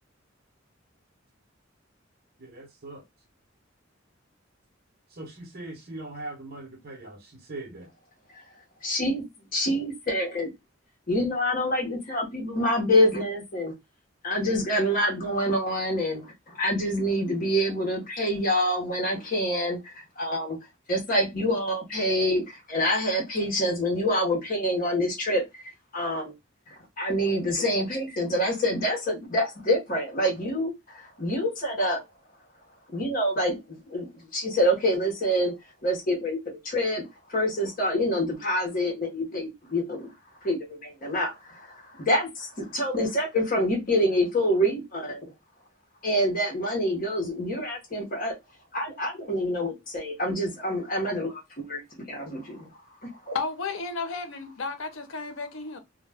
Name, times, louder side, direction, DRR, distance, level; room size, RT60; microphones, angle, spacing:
voice 1, 2.4-3.0 5.1-7.9, right 2 dB, 50° right, 0.9 m, -40 dB
voice 2, 8.8-9.2 9.5-10.5 11.1-13.7 14.2-20.6 20.9-25.6 25.9-26.3 27.0-32.0 32.9-35.5 35.8-40.1 40.4-45.2 46.0-48.4 48.7-52.7 53.0-53.4, equal, 45° left, 0.8 m, -26 dB
voice 3, 53.3-55.8, left 4 dB, 80° left, 0.6 m, -33 dB
2.2 x 2.1 x 3.3 m
head